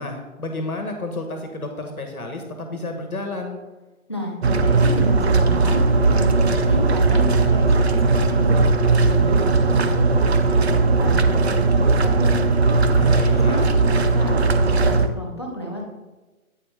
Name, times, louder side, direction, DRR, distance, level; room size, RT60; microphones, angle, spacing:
voice 1, 0.0-3.6 12.9-13.7, left 2 dB, 85° left, 4 dB, 1.3 m, -31 dB
voice 2, 4.1-8.6 9.0-12.4 13.1-15.9, equal, 20° left, -1 dB, 0.5 m, -32 dB
sound 1, 4.4-15.1, right 3 dB, 50° right, 0.5 m, -18 dB
8.4 x 5.0 x 3.3 m, 1.2 s
figure-of-eight pair, 140°, 42 cm